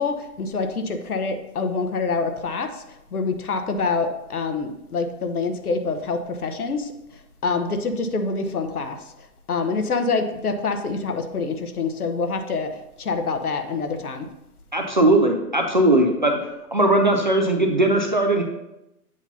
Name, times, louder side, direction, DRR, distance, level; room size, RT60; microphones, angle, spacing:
voice 1, 0.0-2.8 3.1-6.9 7.4-9.0 9.5-14.3, left 4 dB, 70° left, 7 dB, 1.1 m, -26 dB
voice 2, 14.7-16.4 16.7-18.4, right 1 dB, 35° right, 3 dB, 0.4 m, -19 dB
8.0 x 2.7 x 5.6 m, 0.88 s
hypercardioid pair, 150°, 47 cm